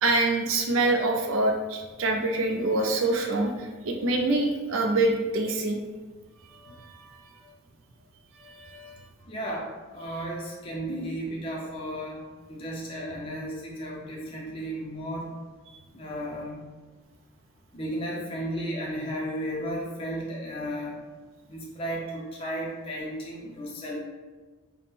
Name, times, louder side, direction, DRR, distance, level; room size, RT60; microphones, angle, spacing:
voice 1, 0.0-5.8 6.6-7.1 8.4-9.0, right 2 dB, 70° right, 2 dB, 0.5 m, -26 dB
voice 2, 9.3-12.2 12.5-15.3 15.9-16.6 17.7-21.0 21.5-24.0, equal, 25° left, -3 dB, 0.4 m, -34 dB
3.5 x 2.1 x 4.1 m, 1.3 s
head